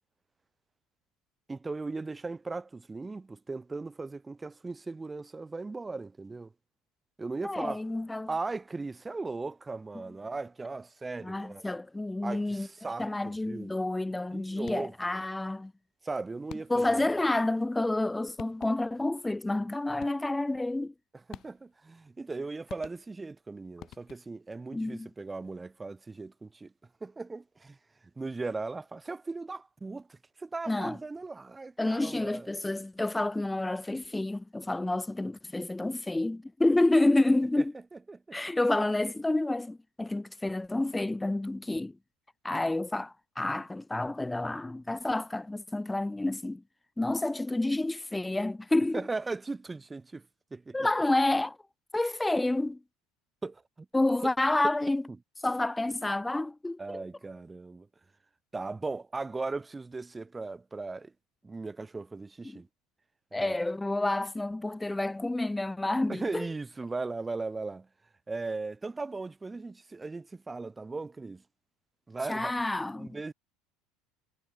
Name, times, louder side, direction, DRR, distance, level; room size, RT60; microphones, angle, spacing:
voice 1, 1.5-6.5 7.2-7.8 8.3-11.6 12.2-13.7 14.3-15.2 16.0-17.1 21.3-26.7 27.0-27.8 28.2-32.5 37.9-38.4 48.9-50.3 50.5-50.9 53.4-53.9 54.2-54.3 56.8-57.9 58.5-61.1 61.4-62.7 63.3-63.6 66.1-67.9 68.3-71.4 72.1-72.5 72.9-73.3, right 3 dB, 15° right, 1.1 m, -38 dB
voice 2, 7.4-8.3 11.2-12.7 13.0-15.7 16.7-20.9 24.7-25.1 30.7-31.0 31.8-37.7 38.3-42.0 42.4-46.6 47.0-49.0 50.7-51.6 51.9-52.8 53.9-55.0 55.4-57.0 62.4-62.6 63.3-66.5 72.3-73.1, left 2 dB, 10° left, 0.5 m, -29 dB
sound 1, 14.6-15.1 16.5-17.0 18.0-18.1 18.4-19.0 20.0-20.5 21.3-21.9 22.7-23.4 23.8-24.5, left 12 dB, 50° left, 1.8 m, -49 dB
hypercardioid pair, 70°, 0 cm